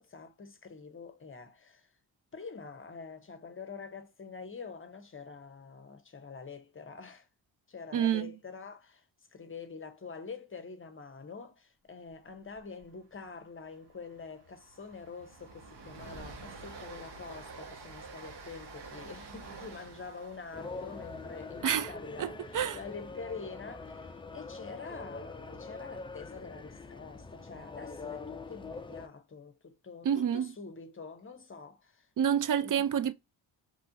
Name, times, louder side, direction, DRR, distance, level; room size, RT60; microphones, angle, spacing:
voice 1, 0.0-1.9 2.3-7.3 7.7-9.0 9.3-32.1 32.6-32.9, left 4 dB, 30° left, 0.7 m, -46 dB
voice 2, 7.9-8.3 21.6-21.9 22.2-22.3 22.5-22.8 30.0-30.5 32.2-33.1, right 9 dB, 45° right, 0.5 m, -28 dB
Train, 12.5-12.8 13.1-13.2 13.6-23.8, right 3 dB, 60° right, 1.0 m, -49 dB
sound 1, 20.5-29.1, left 3 dB, 15° left, 0.3 m, -44 dB
3.1 x 2.4 x 2.5 m
supercardioid pair, 60°, 45 cm